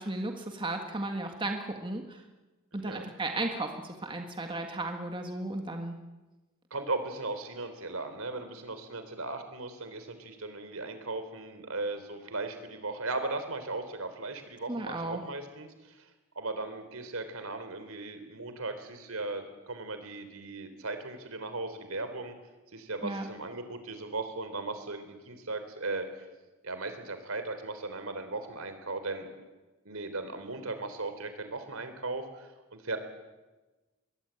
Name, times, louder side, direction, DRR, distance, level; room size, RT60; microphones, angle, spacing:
voice 1, 0.0-2.2 2.7-6.0 14.7-15.2 23.0-23.3, right 2 dB, 25° right, 4 dB, 1.7 m, -35 dB
voice 2, 2.7-3.0 6.7-16.1 16.4-22.3 22.7-26.1 26.6-29.3 29.9-33.0, right 3 dB, 70° right, 9 dB, 3.8 m, -37 dB
23.5 x 21.0 x 9.0 m, 1.2 s
head